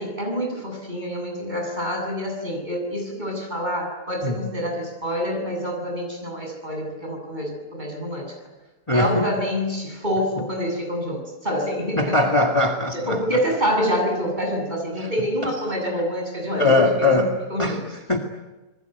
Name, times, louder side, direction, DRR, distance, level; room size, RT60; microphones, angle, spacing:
voice 1, 0.0-8.3 8.9-12.2 12.9-17.2 17.5-17.8, equal, 30° right, 1 dB, 8.3 m, -27 dB
voice 2, 8.9-9.3 12.0-13.2 15.0-15.1 16.6-17.8 18.1-18.2, left 2 dB, 20° left, 2 dB, 2.1 m, -20 dB
27.5 x 21.0 x 9.4 m, 1.1 s
omnidirectional pair, 1.6 m